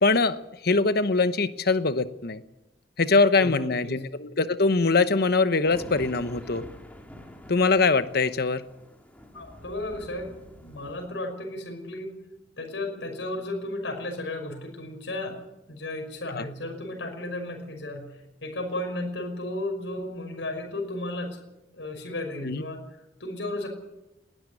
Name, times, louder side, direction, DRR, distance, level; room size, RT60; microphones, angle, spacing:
voice 1, 0.0-2.4 3.0-6.7 7.5-8.6 16.3-16.4 22.4-22.6, left 3 dB, 60° left, 12 dB, 1.0 m, -23 dB
voice 2, 3.3-4.0 9.3-10.3 10.6-12.1 12.6-15.4 15.7-18.1 18.4-21.4 21.7-22.8 23.2-23.7, left 1 dB, 80° left, 3 dB, 5.8 m, -34 dB
sound 1, 5.6-11.1, left 1 dB, 10° left, 2.6 m, -46 dB
20.5 x 13.0 x 9.7 m, 0.94 s
head